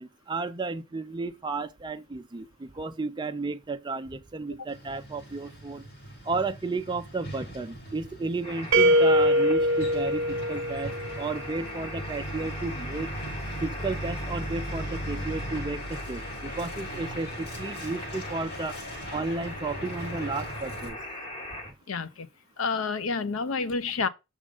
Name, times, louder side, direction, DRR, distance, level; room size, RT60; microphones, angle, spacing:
voice 1, 0.0-5.8 6.3-13.1 13.6-18.8 19.1-21.0, right 3 dB, 20° right, 0.5 m, -33 dB
Truck, 4.7-20.9, right 1 dB, 55° left, 4.9 m, -39 dB
sound 1, 8.4-21.7, left 1 dB, 30° left, 1.7 m, -41 dB
sound 2, 8.7-11.6, equal, 60° right, 0.9 m, -23 dB
voice 2, 21.9-22.3 22.6-24.1, left 4 dB, 80° left, 0.7 m, -29 dB
6.4 x 3.7 x 5.0 m
head